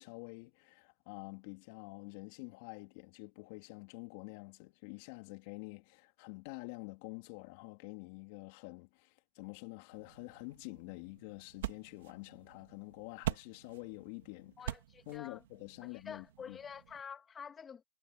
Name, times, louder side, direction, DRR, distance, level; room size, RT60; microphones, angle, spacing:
voice 1, 0.0-14.5 15.1-16.6, left 26 dB, 55° left, 3.0 m, -48 dB
sound 1, 9.9-17.0, right 13 dB, 75° right, 2.0 m, -45 dB
voice 2, 14.6-15.4 15.8-17.8, left 7 dB, 20° left, 2.4 m, -48 dB
hypercardioid pair, 125°, 0 cm